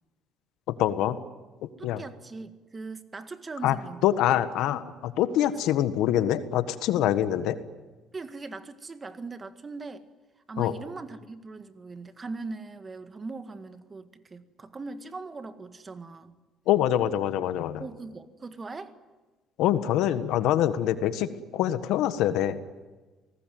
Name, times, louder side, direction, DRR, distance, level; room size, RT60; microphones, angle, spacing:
voice 1, 0.8-1.2 1.8-2.0 3.6-3.8 4.0-7.6 10.6-10.7 16.7-17.8 19.6-22.6, left 11 dB, 80° left, 12 dB, 1.5 m, -25 dB
voice 2, 1.8-4.2 5.6-5.7 8.1-10.0 10.5-16.4 17.8-18.9, right 3 dB, 25° right, 10 dB, 1.8 m, -40 dB
28.0 x 19.0 x 9.4 m, 1.2 s
cardioid pair, 100°, 0 cm